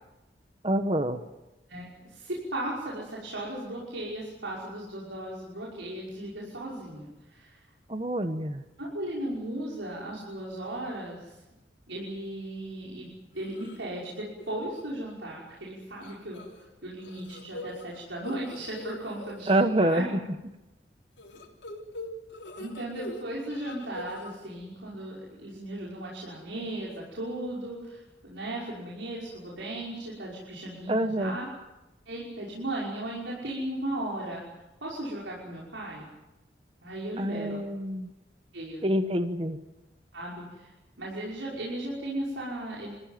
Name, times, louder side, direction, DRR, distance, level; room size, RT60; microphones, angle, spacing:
voice 1, 0.6-1.2 7.9-8.6 19.5-20.2 30.9-31.4 37.2-38.1 38.8-39.6, right 1 dB, 30° right, 8 dB, 1.1 m, -26 dB
voice 2, 1.7-7.6 8.8-11.3 11.9-20.1 22.6-31.4 32.1-34.5 34.8-36.1 36.8-37.6 38.5-38.8 40.1-40.7 41.0-42.9, right 1 dB, 90° right, -5 dB, 5.7 m, -36 dB
sound 1, 13.4-13.8 14.2-14.5 14.7-14.8 16.0-16.7 17.0-20.1 21.2-23.2 23.5-24.3, left 2 dB, 80° left, 3.8 m, -42 dB
27.0 x 15.5 x 9.2 m, 0.99 s
head